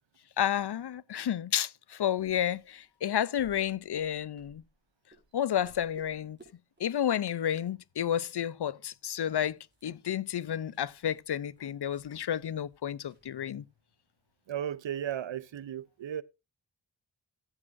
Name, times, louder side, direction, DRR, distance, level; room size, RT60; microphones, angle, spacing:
voice 1, 0.4-4.6 5.3-6.4 6.8-13.6, left 10 dB, 65° left, 0.5 m, -31 dB
sound 1, 2.2-4.9 5.1-5.4 5.6-6.5 6.8-7.3 7.5-7.6 8.0-8.5 8.8-8.9 9.2-13.3, right 1 dB, 25° right, 4.9 m, -62 dB
voice 2, 14.5-16.2, right 10 dB, 80° right, 0.6 m, -35 dB
14.5 x 8.6 x 2.5 m
cardioid pair, 40°, 44 cm